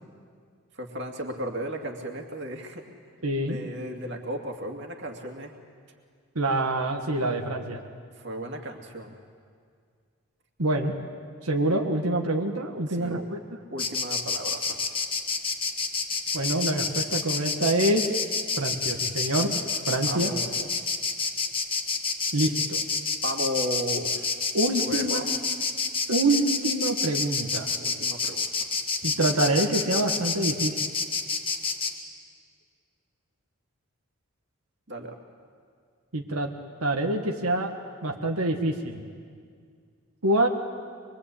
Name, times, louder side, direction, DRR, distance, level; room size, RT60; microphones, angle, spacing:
voice 1, 0.7-2.8 3.4-5.5 8.1-9.1 12.9-13.2 13.7-14.9 20.0-20.7 23.2-24.4 24.8-25.4 27.7-28.7 34.9-35.2, equal, 55° right, 3 dB, 2.5 m, -35 dB
voice 2, 3.2-3.6 6.3-7.8 10.6-10.9 11.4-13.4 16.3-18.0 18.6-19.5 19.9-20.3 22.3-22.8 24.5-25.3 26.1-27.7 29.0-30.7 36.1-36.5 36.8-37.7 38.0-39.0 40.2-40.5, right 1 dB, 90° right, 2 dB, 1.8 m, -26 dB
Insect, 13.8-31.9, left 5 dB, 25° left, 1.6 m, -28 dB
24.5 x 23.0 x 8.6 m, 2.1 s
head